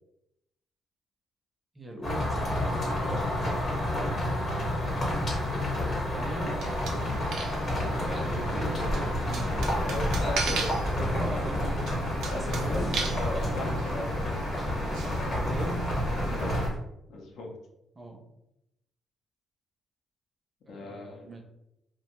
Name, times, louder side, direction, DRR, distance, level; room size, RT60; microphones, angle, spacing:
voice 1, 1.7-2.6 3.1-3.6 5.7-6.5 8.0-9.8 10.9-11.8 12.3-12.9 15.4-15.9 16.2-16.5 18.0-18.2 20.7-21.4, right 1 dB, 25° right, 2 dB, 0.6 m, -40 dB
sound 1, 2.0-16.7, left 1 dB, 45° left, 1.0 m, -30 dB
sound 2, 6.6-16.7, right 4 dB, 80° right, 0.4 m, -39 dB
sound 3, 7.6-16.8, equal, 25° left, 0.8 m, -37 dB
voice 2, 9.9-10.8 12.3-12.8 13.1-14.4 16.3-16.6 17.1-17.5 20.7-21.2, left 2 dB, 75° left, 0 dB, 0.6 m, -37 dB
2.5 x 2.2 x 2.9 m, 0.85 s
cardioid pair, 90°, 0 cm